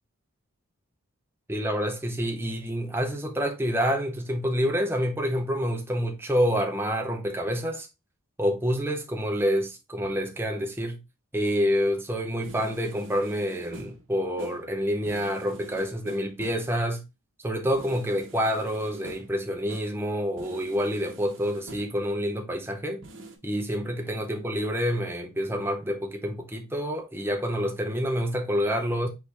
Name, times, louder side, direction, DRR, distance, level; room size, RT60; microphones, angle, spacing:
voice 1, 1.5-7.9 8.4-11.0 11.3-17.0 17.4-23.0 23.4-29.1, equal, 10° right, 0.6 m, -27 dB
sound 1, 12.4-14.1 14.4-14.7 15.0-16.8 17.8-19.4 19.7-20.0 20.4-22.1 23.0-23.4, right 2 dB, 60° right, 0.9 m, -46 dB
4.4 x 3.3 x 3.2 m
head